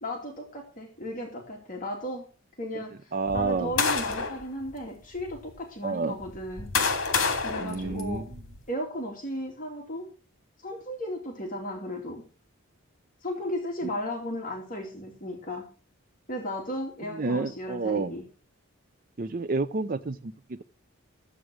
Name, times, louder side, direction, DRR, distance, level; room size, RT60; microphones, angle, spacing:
voice 1, 0.0-2.2 2.6-6.7 7.4-8.2 8.7-10.1 10.6-12.2 13.2-15.7 16.3-18.2, equal, 35° left, 0 dB, 2.7 m, -35 dB
voice 2, 3.1-3.7 5.8-6.2 7.6-8.3 17.0-18.1 19.2-20.6, right 3 dB, 40° right, 9 dB, 0.5 m, -29 dB
sound 1, 3.3-4.4 5.2-5.3 6.2-8.6, left 5 dB, 60° left, 2.8 m, -28 dB
14.0 x 8.3 x 6.3 m, 0.36 s
head